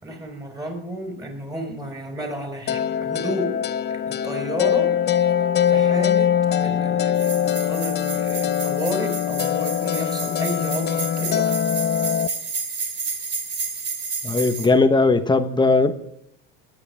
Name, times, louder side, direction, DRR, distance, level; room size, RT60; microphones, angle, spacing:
voice 1, 0.0-3.6 4.1-5.3 5.7-11.6, equal, 10° right, 3 dB, 4.6 m, -32 dB
sound 1, 2.7-12.3, left 9 dB, 35° left, 0.7 m, -22 dB
sound 2, 7.2-14.7, right 5 dB, 35° right, 2.7 m, -31 dB
voice 2, 14.2-16.0, left 3 dB, 15° left, 9 dB, 1.1 m, -18 dB
23.0 x 9.8 x 3.5 m, 0.74 s
supercardioid pair, 110°, 32 cm